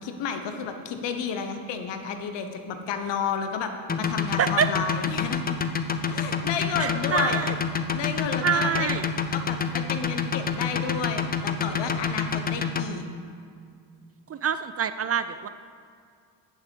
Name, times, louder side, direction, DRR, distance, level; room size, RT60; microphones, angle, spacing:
voice 1, 0.0-3.7 4.0-5.4 6.1-7.4 7.9-8.9 9.3-13.0, left 6 dB, 70° left, 7 dB, 1.2 m, -31 dB
sound 1, 3.9-12.8, left 6 dB, 20° left, 0.6 m, -27 dB
voice 2, 4.4-4.7 6.8-7.5 8.4-9.1 14.3-15.5, right 7 dB, 35° right, 12 dB, 0.4 m, -26 dB
9.0 x 7.1 x 5.4 m, 2.3 s
supercardioid pair, 75°, 44 cm